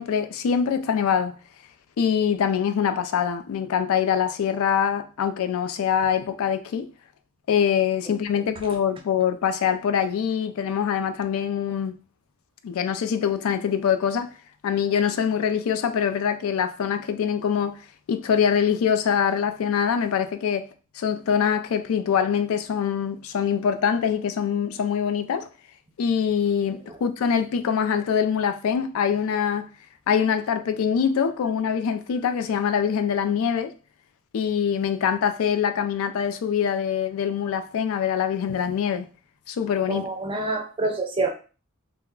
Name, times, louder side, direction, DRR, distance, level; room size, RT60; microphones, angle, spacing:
voice 1, 0.0-1.4 2.0-6.9 7.5-11.9 12.6-14.3 14.6-17.8 18.1-20.7 21.0-25.5 26.0-29.7 30.1-33.7 34.3-39.1 39.5-40.1, left 7 dB, 65° left, 0.3 m, -24 dB
voice 2, 39.9-41.3, right 3 dB, 25° right, 0.4 m, -27 dB
2.3 x 2.1 x 3.5 m
head